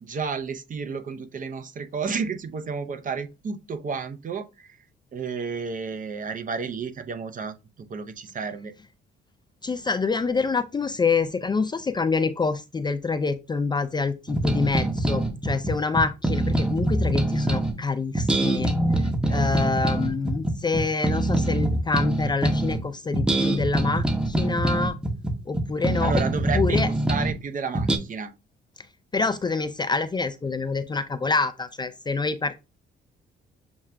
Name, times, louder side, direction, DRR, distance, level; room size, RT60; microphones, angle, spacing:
voice 1, 0.0-4.8 5.1-7.5 7.9-8.7 19.2-19.7 26.0-28.3, right 5 dB, 40° right, 0.6 m, -31 dB
voice 2, 9.6-18.7 19.3-24.9 25.5-26.1 26.5-26.9 29.1-32.6, left 4 dB, 20° left, 0.3 m, -26 dB
sound 1, 14.3-17.7 18.1-22.8 23.1-27.4 27.7-28.0, right 1 dB, 5° right, 0.8 m, -24 dB
7.0 x 2.3 x 2.2 m
cardioid pair, 90°, 20 cm